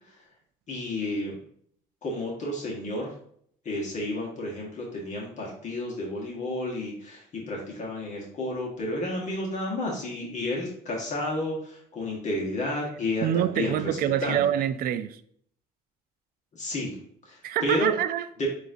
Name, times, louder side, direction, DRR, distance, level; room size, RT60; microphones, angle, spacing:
voice 1, 0.7-1.4 2.0-3.1 3.6-14.5 16.5-16.9 17.2-17.9 18.4-18.5, left 1 dB, 45° left, 1.2 m, -31 dB
voice 2, 13.2-15.2 17.4-18.5, right 10 dB, 60° right, 0.4 m, -26 dB
6.6 x 2.5 x 2.6 m
cardioid pair, 110°, 17 cm